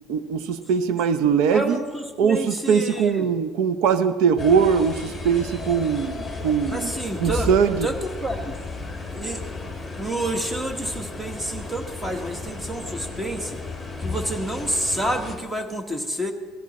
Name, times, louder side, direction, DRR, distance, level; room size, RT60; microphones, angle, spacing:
voice 1, 0.1-1.8 2.2-6.9 7.2-7.9, right 6 dB, 75° right, 11 dB, 0.7 m, -21 dB
voice 2, 1.5-3.3 6.7-7.5 7.8-8.6 9.1-9.4 9.9-13.6 14.0-16.3, right 1 dB, 10° right, 5 dB, 1.4 m, -29 dB
sound 1, 4.4-15.4, left 3 dB, 5° left, 2.2 m, -34 dB
18.0 x 13.5 x 4.2 m, 1.4 s
cardioid pair, 150°, 0 cm